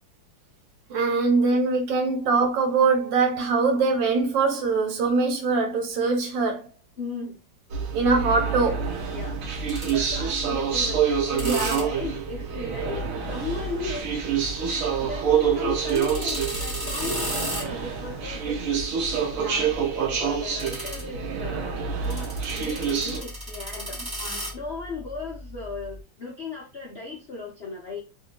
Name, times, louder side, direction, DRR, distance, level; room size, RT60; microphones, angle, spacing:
voice 1, 0.9-6.7 7.9-8.9 11.4-11.8 19.4-19.6 24.2-24.4, right 4 dB, 70° right, 1.3 m, -23 dB
voice 2, 7.0-7.4 9.1-9.4 9.9-14.1 14.6-15.3 15.5-18.7 19.4-24.0 24.5-28.0, left 4 dB, 80° left, 0.5 m, -37 dB
sound 1, 7.7-23.2, right 7 dB, 90° right, 0.7 m, -27 dB
sound 2, 9.3-26.0, equal, 10° right, 1.3 m, -37 dB
3.2 x 2.8 x 2.8 m
omnidirectional pair, 2.3 m